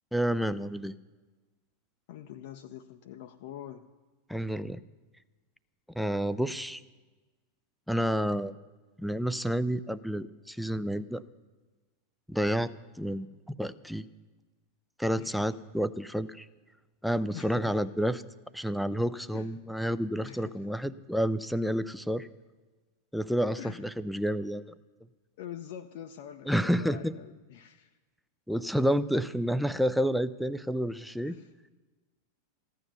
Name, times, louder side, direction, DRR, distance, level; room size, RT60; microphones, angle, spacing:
voice 1, 0.1-0.9 4.3-4.8 5.9-6.8 7.9-8.5 9.0-11.2 12.3-12.7 13.0-14.0 15.0-16.5 17.0-18.2 18.5-22.3 23.1-24.7 26.5-27.1 28.5-31.4, equal, ahead, 15 dB, 0.5 m, -29 dB
voice 2, 2.1-3.9 15.2-15.5 17.3-17.8 19.3-19.6 20.0-20.7 23.6-23.9 25.4-27.9 31.2-31.5, left 10 dB, 55° left, 6 dB, 0.6 m, -45 dB
15.0 x 9.3 x 6.9 m, 1.3 s
figure-of-eight pair, 90°, 0 cm